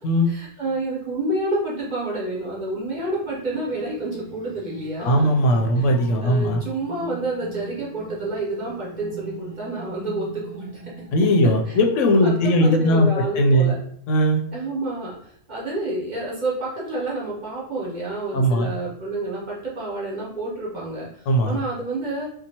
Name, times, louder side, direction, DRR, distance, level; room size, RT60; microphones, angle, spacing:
voice 1, 0.3-5.3 5.8-5.9 6.2-10.7 11.7-11.8 12.2-13.8 14.5-15.1 15.5-21.1 21.4-22.3, right 2 dB, 40° right, -5 dB, 1.0 m, -29 dB
sound 1, 2.9-13.1, right 4 dB, 15° left, 0.7 m, -42 dB
voice 2, 5.0-6.6 11.1-13.1 13.4-13.7 14.1-14.4 18.3-18.7 21.3-21.6, equal, 80° left, 2 dB, 0.9 m, -18 dB
2.8 x 2.3 x 2.7 m, 0.65 s
omnidirectional pair, 1.3 m